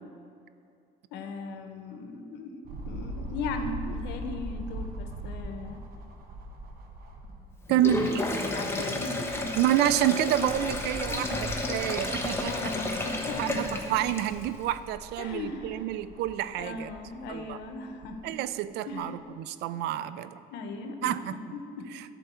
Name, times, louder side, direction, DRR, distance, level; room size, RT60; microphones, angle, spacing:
voice 1, 1.1-2.6 2.9-5.8 7.8-9.5 11.1-11.4 12.4-14.0 15.2-15.8 16.6-18.3 18.9-19.2 20.5-21.9, left 3 dB, 85° left, 5 dB, 1.0 m, -38 dB
sound 1, 2.7-7.7 8.2-8.3 9.6-18.1 18.9-19.0, right 1 dB, 60° right, 1.3 m, -41 dB
Sink (filling or washing), 7.7-14.5, left 2 dB, 15° left, 1.0 m, -32 dB
voice 2, 7.7-8.1 9.5-12.7 13.4-16.9 17.3-17.6 18.2-20.4 21.0-21.3, right 13 dB, 80° right, 15 dB, 0.4 m, -28 dB
11.5 x 4.5 x 6.9 m, 2.6 s
cardioid pair, 110°, 17 cm